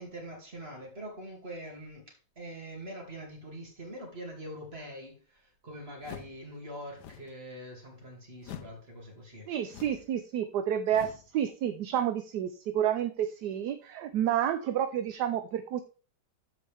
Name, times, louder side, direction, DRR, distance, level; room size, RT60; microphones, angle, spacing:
voice 1, 0.0-9.5, equal, 35° right, 0 dB, 2.8 m, -44 dB
sound 1, 6.0-6.4 6.9-7.3 8.4-8.8 9.7-10.1 10.9-11.3, left 9 dB, 75° left, 1.3 m, -45 dB
voice 2, 9.5-15.8, right 10 dB, 75° right, 9 dB, 1.2 m, -30 dB
14.0 x 5.0 x 3.5 m, 0.37 s
omnidirectional pair, 1.9 m